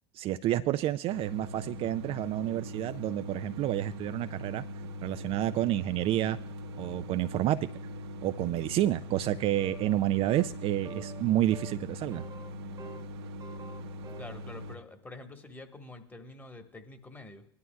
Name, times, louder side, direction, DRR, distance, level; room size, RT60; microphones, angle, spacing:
voice 1, 0.1-4.6 5.0-6.4 6.8-7.7 8.2-12.2, right 14 dB, 45° right, 11 dB, 0.4 m, -29 dB
sound 1, 1.1-14.8, equal, 75° right, 1.0 m, -41 dB
sound 2, 9.6-10.0 10.3-10.6 10.9-11.2 11.5-11.8 12.1-13.1 13.4-14.4, right 4 dB, 30° right, 1.1 m, -46 dB
voice 2, 14.2-17.5, left 2 dB, 15° left, 5 dB, 1.4 m, -47 dB
20.0 x 11.0 x 2.3 m, 0.68 s
hypercardioid pair, 75°, 14 cm